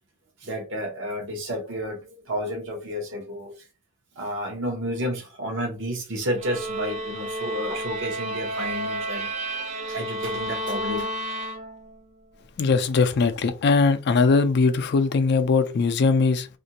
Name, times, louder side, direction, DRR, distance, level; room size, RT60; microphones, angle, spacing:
voice 1, 0.4-3.5 4.2-9.5 9.9-11.1, equal, 60° right, 0.8 m, -31 dB
sound 1, 6.4-12.1, right 1 dB, 30° right, 0.3 m, -31 dB
voice 2, 12.6-16.5, left 4 dB, 50° left, 0.4 m, -20 dB
2.5 x 2.2 x 2.8 m
head